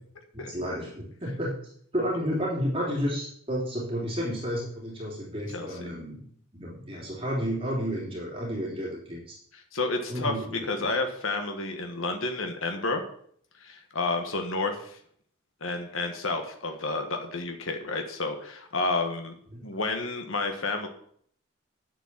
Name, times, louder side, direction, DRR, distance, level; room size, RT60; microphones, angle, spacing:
voice 1, 0.3-1.5 1.9-6.2 6.5-9.4 10.1-10.9 19.5-19.7, equal, 25° right, -3 dB, 3.4 m, -31 dB
voice 2, 5.5-5.8 9.5-10.3 10.7-13.0 13.6-15.0 15.6-19.4 19.6-20.9, left 3 dB, 80° left, 5 dB, 1.6 m, -30 dB
9.4 x 7.8 x 7.5 m, 0.63 s
head